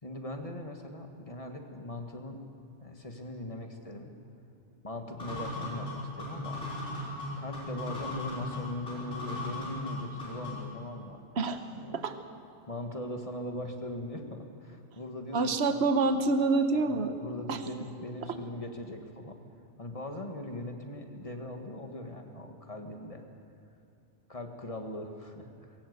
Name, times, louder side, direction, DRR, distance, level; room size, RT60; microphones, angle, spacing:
voice 1, 0.0-2.4 2.8-4.1 4.8-6.7 7.4-11.3 11.7-12.0 12.7-15.7 16.7-19.4 19.8-23.2 24.3-25.5, left 1 dB, 30° left, 4 dB, 1.8 m, -40 dB
sound 1, 5.2-10.8, left 2 dB, 55° left, 5.9 m, -37 dB
voice 2, 15.3-17.1 17.5-17.6, right 3 dB, 65° right, 8 dB, 1.3 m, -26 dB
22.0 x 17.0 x 8.1 m, 2.6 s
omnidirectional pair, 1.2 m